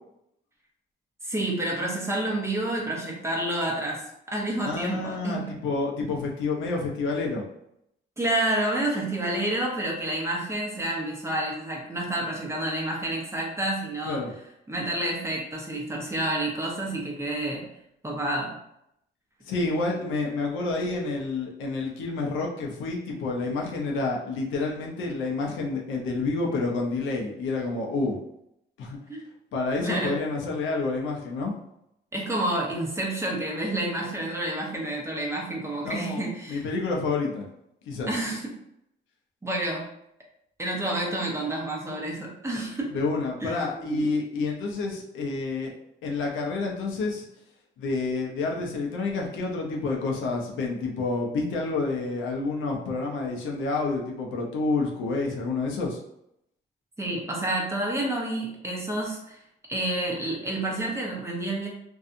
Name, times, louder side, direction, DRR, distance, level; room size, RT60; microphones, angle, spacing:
voice 1, 1.2-5.5 8.2-14.2 14.7-17.6 18.0-18.6 29.1-29.2 29.8-30.2 32.1-36.6 38.1-38.5 39.4-39.9 40.6-42.9 43.4-44.1 57.0-59.4 59.7-61.7, right 1 dB, 15° right, -2 dB, 0.7 m, -29 dB
voice 2, 4.6-7.4 14.0-14.3 19.4-28.2 28.8-29.0 29.5-31.5 35.8-37.5 37.9-38.2 42.9-45.7 46.0-47.3 47.8-56.0, left 3 dB, 80° left, 0 dB, 0.6 m, -29 dB
2.6 x 2.3 x 2.5 m, 0.78 s
cardioid pair, 90°, 20 cm